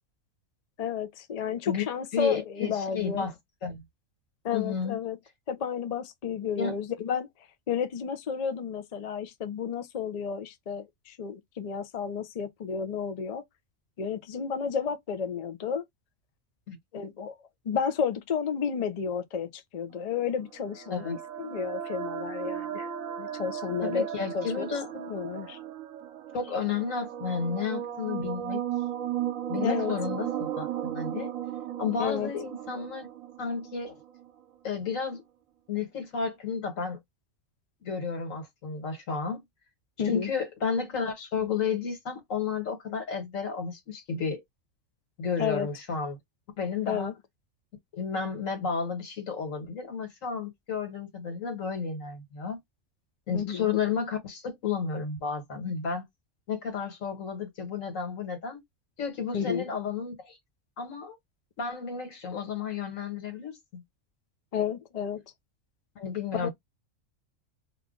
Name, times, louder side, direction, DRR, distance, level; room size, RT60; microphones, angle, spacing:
voice 1, 0.8-3.3 4.4-5.2 5.5-7.3 7.7-13.4 14.0-15.8 16.9-17.3 17.6-22.9 23.2-24.1 24.3-24.7 24.9-25.6 29.5-29.9 32.0-32.3 40.0-40.3 45.4-45.7 46.9-47.1 53.3-53.7 59.3-59.7 64.5-65.2 66.3-66.5, left 7 dB, 55° left, 0.4 m, -31 dB
voice 2, 2.1-3.3 3.6-3.8 4.5-5.0 6.6-6.8 16.7-16.8 20.9-21.2 23.8-24.9 26.3-28.6 29.5-31.3 31.8-33.1 33.4-34.0 34.6-35.2 35.7-37.0 37.8-39.4 40.0-44.4 45.2-46.2 46.6-47.1 47.9-52.6 53.3-56.1 56.5-58.6 59.0-60.4 60.8-61.2 61.6-63.8 66.0-66.5, left 6 dB, 75° left, 1.7 m, -32 dB
sound 1, 20.2-34.3, right 10 dB, 85° right, 1.0 m, -36 dB
2.9 x 2.4 x 3.7 m
omnidirectional pair, 1.4 m